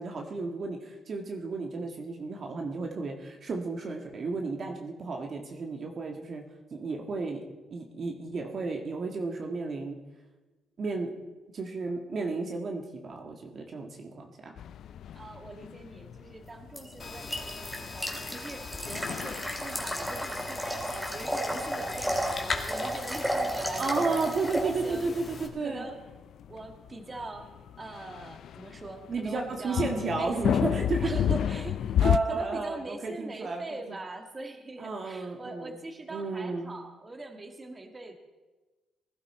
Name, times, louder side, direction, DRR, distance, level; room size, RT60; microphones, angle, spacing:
voice 1, 0.0-6.4 6.7-7.4 7.7-10.0 10.8-11.1 11.5-14.6 23.8-25.9 29.1-31.4 31.6-31.7 32.0-34.0 34.8-35.7 36.1-36.8, right 3 dB, 50° right, 2 dB, 1.6 m, -33 dB
sound 1, 14.6-32.2, left 10 dB, 70° left, 0.3 m, -33 dB
voice 2, 15.1-24.1 24.6-25.1 25.6-26.0 26.5-27.5 27.8-30.4 31.0-31.8 32.2-38.1, right 2 dB, 25° right, 5 dB, 1.8 m, -42 dB
sound 2, 16.8-24.6, equal, 5° right, 2.5 m, -33 dB
sound 3, 17.0-25.5, left 3 dB, 40° left, 2.0 m, -40 dB
19.0 x 11.5 x 4.3 m, 1.2 s
cardioid pair, 90°, 0 cm